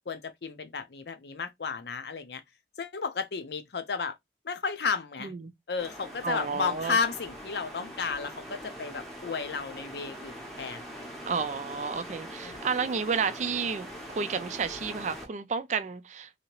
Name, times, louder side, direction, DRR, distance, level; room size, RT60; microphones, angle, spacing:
voice 1, 0.1-2.4 2.8-4.2 4.4-5.3 5.7-11.1 12.4-12.7, left 5 dB, 65° left, 0.6 m, -33 dB
voice 2, 5.2-5.5 6.2-7.0 11.3-16.3, right 5 dB, 40° right, 0.4 m, -31 dB
sound 1, 5.8-15.3, equal, ahead, 0.8 m, -43 dB
2.9 x 2.7 x 2.9 m
head